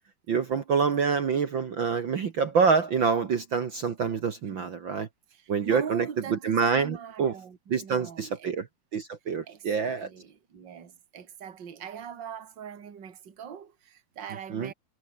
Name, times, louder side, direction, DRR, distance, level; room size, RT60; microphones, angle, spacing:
voice 1, 0.3-5.1 5.5-7.3 7.7-8.7 8.9-10.1 14.5-14.7, right 5 dB, 60° right, 1.2 m, -26 dB
voice 2, 5.3-8.5 9.4-14.7, right 7 dB, 35° right, 2.6 m, -42 dB
omnidirectional pair, 4.2 m